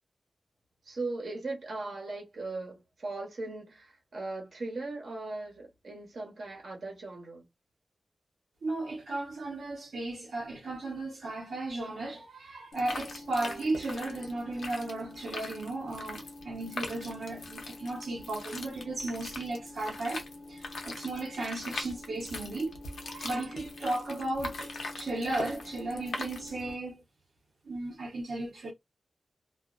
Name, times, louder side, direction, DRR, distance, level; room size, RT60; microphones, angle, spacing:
voice 1, 0.8-7.5 13.4-13.8, right 2 dB, 60° right, 1.0 m, -39 dB
voice 2, 8.6-22.8 23.0-27.0 27.7-28.7, right 2 dB, 75° right, 0.7 m, -35 dB
sound 1, 12.7-26.7, left 2 dB, 80° left, 0.7 m, -41 dB
2.4 x 2.1 x 2.4 m
wide cardioid pair, 145°, 0 cm